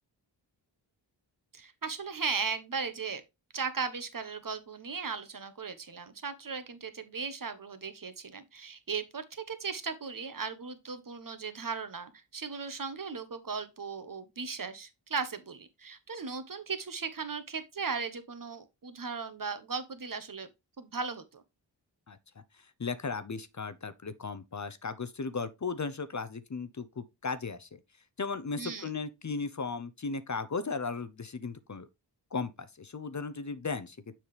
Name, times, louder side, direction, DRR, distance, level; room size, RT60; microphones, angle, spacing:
voice 1, 1.5-3.2 3.5-20.5 20.8-21.4 28.6-28.9, right 5 dB, 45° right, 1.3 m, -37 dB
voice 2, 22.6-27.8 28.2-31.9 32.3-34.0, left 4 dB, 40° left, 0.7 m, -36 dB
7.2 x 5.9 x 3.3 m
cardioid pair, 45°, 46 cm